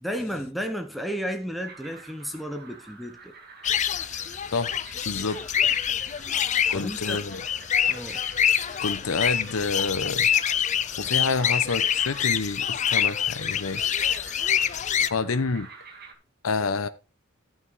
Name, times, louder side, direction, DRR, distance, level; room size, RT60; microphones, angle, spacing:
voice 1, 0.0-3.3 6.7-7.2 7.9-8.3, equal, ahead, 0.8 m, -33 dB
sound 1, 1.6-16.1, right 4 dB, 50° right, 1.9 m, -47 dB
sound 2, 3.6-15.1, left 9 dB, 35° left, 0.4 m, -26 dB
voice 2, 5.1-5.4 6.7-7.4 8.8-10.3 11.0-13.8 15.1-15.7 16.4-16.9, left 4 dB, 80° left, 0.8 m, -28 dB
12.0 x 5.9 x 4.6 m
head